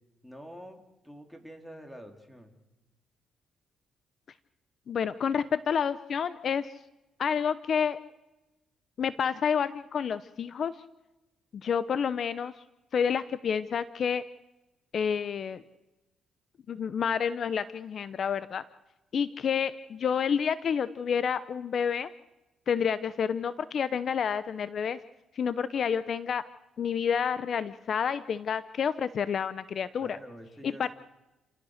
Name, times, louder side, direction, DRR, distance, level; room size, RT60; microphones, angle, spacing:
voice 1, 0.2-2.6 30.0-30.9, equal, 5° left, 4 dB, 3.8 m, -47 dB
voice 2, 4.9-6.7 7.2-8.0 9.0-10.7 11.5-12.5 12.9-14.2 14.9-15.6 16.7-18.6 19.1-22.1 22.7-25.0 25.3-26.4 26.8-30.2 30.6-30.9, left 7 dB, 55° left, 14 dB, 0.8 m, -29 dB
30.0 x 17.0 x 6.6 m, 1.0 s
cardioid pair, 90°, 0 cm